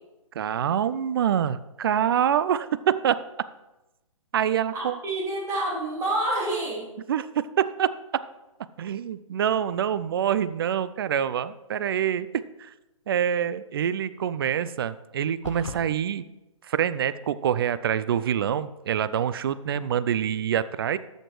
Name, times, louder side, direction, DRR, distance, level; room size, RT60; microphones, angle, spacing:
voice 1, 0.4-3.2 4.3-5.0 7.1-7.9 8.8-12.3 12.6-12.7 13.1-16.2 16.6-21.0, right 9 dB, 45° right, 15 dB, 0.4 m, -26 dB
voice 2, 4.7-6.9 19.7-19.8, right 1 dB, 15° right, -4 dB, 2.5 m, -28 dB
sound 1, 15.4-15.8, left 5 dB, 65° left, 0.8 m, -36 dB
13.5 x 6.5 x 3.2 m, 0.98 s
figure-of-eight pair, 135°, 17 cm